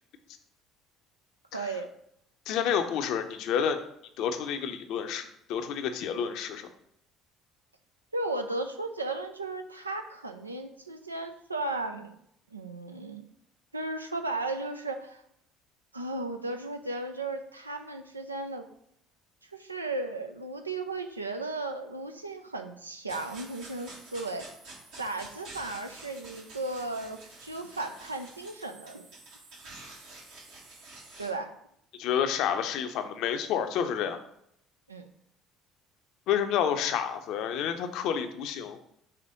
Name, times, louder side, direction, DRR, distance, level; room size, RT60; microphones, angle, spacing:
voice 1, 1.5-1.9 8.1-12.2 12.5-13.3 13.7-15.2 15.9-18.7 19.5-24.5 25.0-29.1 31.2-31.5 34.9-35.1, right 2 dB, 90° right, 6 dB, 0.4 m, -35 dB
voice 2, 2.5-3.8 4.2-6.7 32.0-34.2 36.3-38.8, left 8 dB, 60° left, 8 dB, 0.6 m, -29 dB
sound 1, 23.1-31.3, right 2 dB, 65° right, 1.7 m, -48 dB
5.7 x 3.3 x 4.9 m, 0.73 s
figure-of-eight pair, 55°, 0 cm